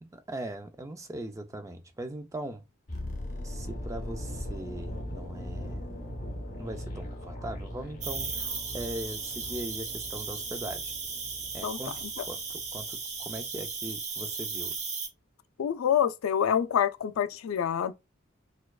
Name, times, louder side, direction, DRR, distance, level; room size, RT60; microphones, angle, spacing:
voice 1, 0.0-2.6 3.4-6.0 6.6-8.5 8.7-10.9 11.5-14.7, right 1 dB, 15° right, 0.4 m, -40 dB
sound 1, 2.9-12.9 13.1-13.4, left 1 dB, 35° left, 0.9 m, -40 dB
Cricket, 8.0-15.1, right 5 dB, 35° right, 0.7 m, -36 dB
voice 2, 15.6-17.9, left 8 dB, 85° left, 0.4 m, -26 dB
4.3 x 2.3 x 2.3 m
head